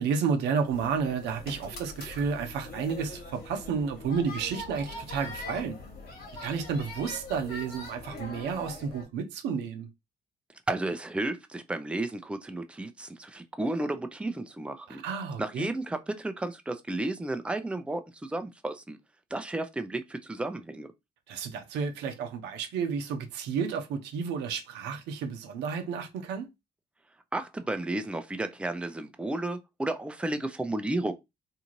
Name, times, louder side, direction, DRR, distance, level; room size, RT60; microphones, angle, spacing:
voice 1, 0.0-5.8 6.4-9.9 14.9-15.7 21.3-26.5, right 6 dB, 80° right, 0.6 m, -31 dB
sound 1, 0.7-9.0, left 2 dB, 60° left, 1.4 m, -42 dB
voice 2, 10.7-15.0 15.4-19.0 19.3-20.9 27.3-31.1, right 2 dB, 5° right, 0.5 m, -33 dB
2.7 x 2.4 x 3.0 m
supercardioid pair, 55°, 17 cm